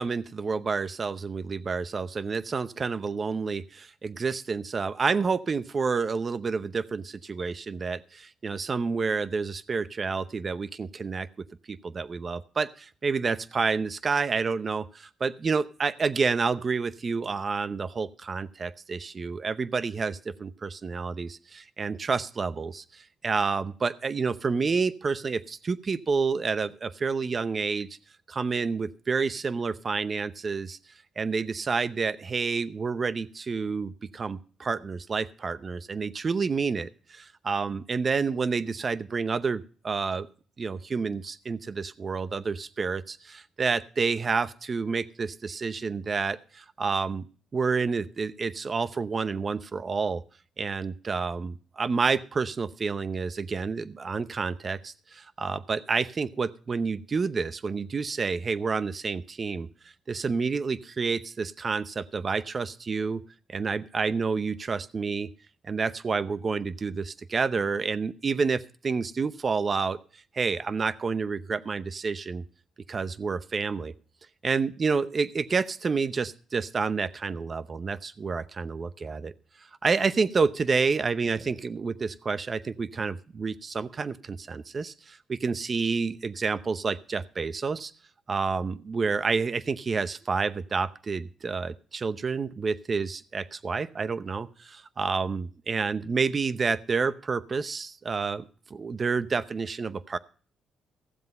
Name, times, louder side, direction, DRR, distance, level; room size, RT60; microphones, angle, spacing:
voice 1, 0.0-11.3 11.7-27.9 28.3-30.8 31.2-40.3 40.6-47.2 47.5-50.2 50.6-59.7 60.1-63.2 63.5-65.3 65.6-70.0 70.3-72.4 72.9-73.9 74.4-79.3 79.8-87.9 88.3-98.4 98.7-100.2, right 4 dB, 35° right, 15 dB, 0.7 m, -29 dB
15.5 x 7.7 x 5.4 m, 0.41 s
cardioid pair, 90°, 0 cm